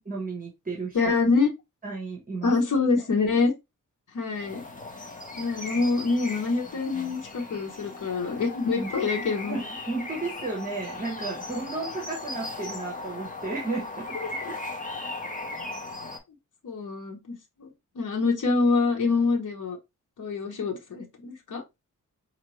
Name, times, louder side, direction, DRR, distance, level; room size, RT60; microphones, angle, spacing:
voice 1, 0.1-1.1 1.8-2.5 6.9-7.1 8.8-8.9 9.5-14.2 14.5-14.6, right 3 dB, 25° right, 0.9 m, -33 dB
voice 2, 0.9-1.5 2.4-3.5 4.1-4.6 5.4-9.6 14.1-14.5 16.6-17.7 17.9-19.8 20.2-21.6, left 4 dB, 70° left, 1.1 m, -26 dB
sound 1, 4.3-16.2, left 2 dB, 25° left, 0.8 m, -38 dB
4.6 x 2.8 x 3.0 m
wide cardioid pair, 175°, 32 cm